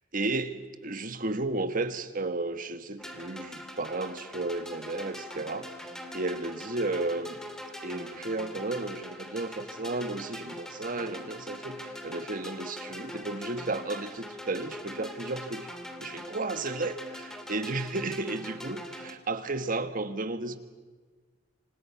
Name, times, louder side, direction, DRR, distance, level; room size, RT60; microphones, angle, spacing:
voice 1, 0.1-7.4 7.8-15.7 16.0-20.6, right 2 dB, 45° right, 1.5 m, -33 dB
sound 1, 3.0-19.1, left 1 dB, 5° left, 2.4 m, -42 dB
28.0 x 26.0 x 5.9 m
head